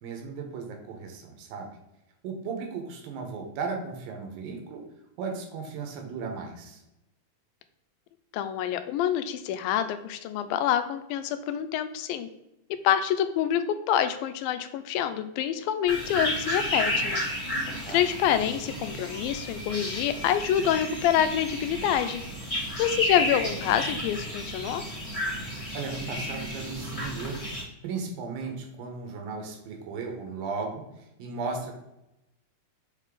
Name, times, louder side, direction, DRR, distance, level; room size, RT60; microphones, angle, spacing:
voice 1, 0.0-1.7 2.2-4.8 5.2-6.8 17.9-18.0 25.7-31.7, right 4 dB, 80° right, 3 dB, 2.7 m, -36 dB
voice 2, 8.3-12.3 12.8-17.2 17.9-22.2 22.8-24.8, left 10 dB, 80° left, 10 dB, 2.3 m, -26 dB
sound 1, 15.9-27.6, left 1 dB, 15° left, 1.4 m, -32 dB
6.6 x 4.1 x 3.6 m, 0.88 s
omnidirectional pair, 4.2 m